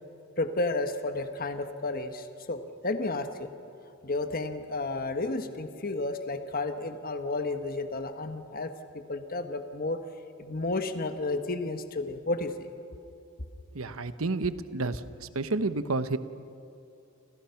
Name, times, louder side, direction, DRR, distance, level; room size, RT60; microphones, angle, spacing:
voice 1, 0.4-3.5 4.0-10.0 10.4-12.7, left 2 dB, 45° left, 7 dB, 1.4 m, -32 dB
voice 2, 13.7-16.2, right 3 dB, 75° right, 12 dB, 1.1 m, -30 dB
30.0 x 26.5 x 5.9 m, 2.8 s
head